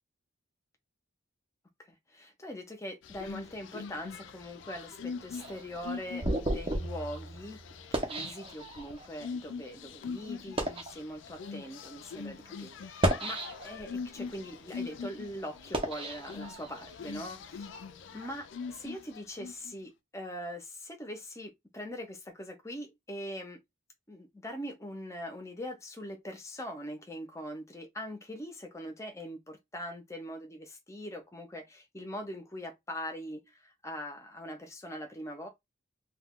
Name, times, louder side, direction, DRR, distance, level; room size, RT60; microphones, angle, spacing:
voice 1, 2.1-7.6 7.9-13.4 13.6-17.7 18.1-23.6 24.1-35.5, equal, 15° left, 0.6 m, -42 dB
sound 1, 3.0-19.7, left 5 dB, 60° left, 0.3 m, -43 dB
sound 2, 5.3-9.1 9.7-9.9 10.4-10.9 11.7-11.9 12.8-13.9 14.4-16.9, right 1 dB, 25° right, 0.6 m, -34 dB
2.3 x 2.3 x 3.5 m
head